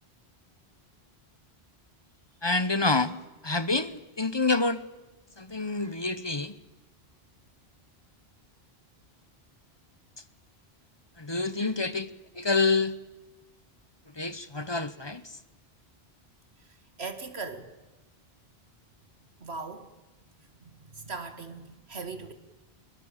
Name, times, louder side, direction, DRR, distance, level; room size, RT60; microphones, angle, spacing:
voice 1, 2.4-3.2 3.4-4.8 5.4-6.5 11.2-12.1 12.3-13.0 14.2-15.4, left 3 dB, 25° left, 0.9 m, -27 dB
voice 2, 11.6-11.9 16.6-16.7 17.0-17.7 19.4-19.9 20.7-22.3, right 4 dB, 85° right, 2.2 m, -39 dB
23.0 x 23.0 x 9.0 m
omnidirectional pair, 1.0 m